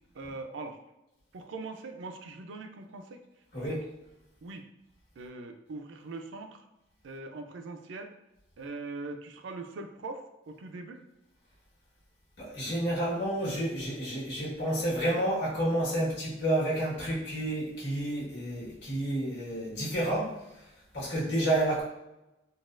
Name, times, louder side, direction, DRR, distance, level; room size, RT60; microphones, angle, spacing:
voice 1, 0.1-0.8 1.3-3.2 3.7-3.8 4.4-4.7 5.2-6.6 7.0-8.1 8.6-11.0 21.1-21.3, right 3 dB, 75° right, 6 dB, 0.4 m, -41 dB
voice 2, 3.5-3.8 12.4-20.4 20.9-21.8, right 1 dB, 65° left, -7 dB, 1.5 m, -30 dB
4.0 x 2.3 x 2.4 m, 0.91 s
head